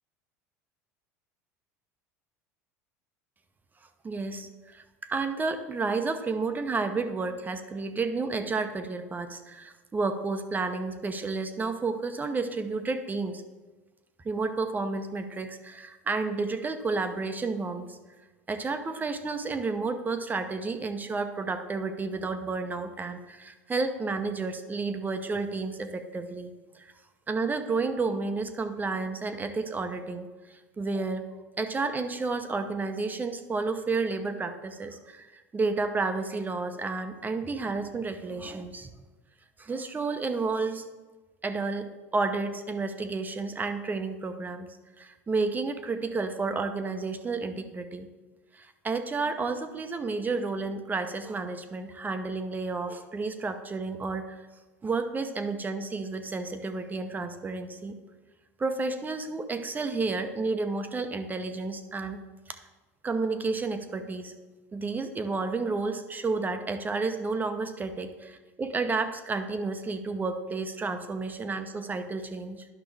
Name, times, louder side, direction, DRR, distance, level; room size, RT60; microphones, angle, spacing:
voice 1, 4.0-13.4 14.2-18.0 18.5-26.9 27.3-31.2 31.6-38.9 39.6-40.8 41.4-44.7 45.0-48.1 48.5-54.4 54.8-58.0 58.6-62.2 63.0-64.3 64.7-72.7, right 3 dB, 20° right, 7 dB, 0.8 m, -31 dB
10.5 x 5.9 x 3.4 m, 1.2 s
hypercardioid pair, 80°, 8 cm